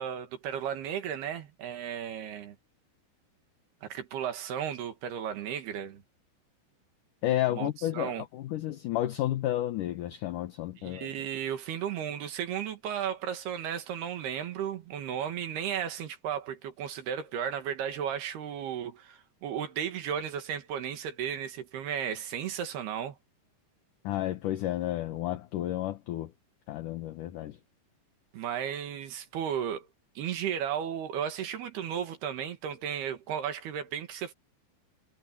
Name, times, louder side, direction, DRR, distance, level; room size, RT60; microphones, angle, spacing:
voice 1, 0.0-2.6 3.8-6.0 7.6-8.3 10.8-23.2 28.3-29.9 30.2-34.3, right 9 dB, 70° right, 3.7 m, -34 dB
voice 2, 7.2-11.1 24.0-26.3 26.7-27.6, left 13 dB, 70° left, 2.1 m, -31 dB
omnidirectional pair, 5.0 m